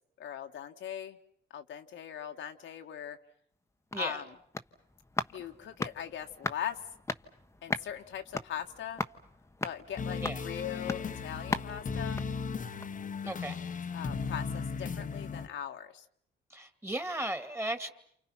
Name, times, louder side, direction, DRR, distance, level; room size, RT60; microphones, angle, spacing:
voice 1, 0.2-1.2 1.5-3.2 4.0-4.2 5.3-6.8 7.6-9.0 9.6-12.2 13.9-16.1, left 9 dB, 75° left, 4 dB, 1.7 m, -40 dB
sound 1, 3.5-13.1 13.4-13.5, left 2 dB, 15° left, 1.2 m, -39 dB
sound 2, 10.0-15.5, left 5 dB, 40° left, 1.2 m, -36 dB
voice 2, 13.2-13.6 16.5-17.9, right 1 dB, 15° right, 9 dB, 2.4 m, -35 dB
29.0 x 28.5 x 5.9 m, 0.66 s
cardioid pair, 90°, 20 cm